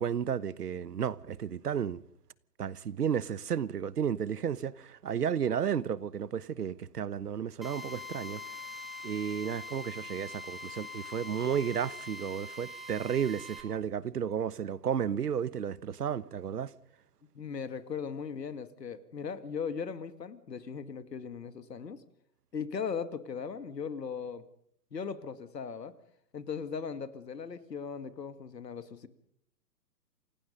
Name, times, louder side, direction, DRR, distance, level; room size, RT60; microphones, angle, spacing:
voice 1, 0.0-2.0 2.6-8.4 9.0-16.7, right 8 dB, 70° right, 1.1 m, -33 dB
Drill, 7.6-13.6, left 2 dB, ahead, 1.5 m, -43 dB
voice 2, 17.3-22.0 22.5-24.4 24.9-25.9 26.3-29.1, left 6 dB, 75° left, 2.3 m, -38 dB
28.0 x 18.0 x 5.3 m
hypercardioid pair, 155°, 49 cm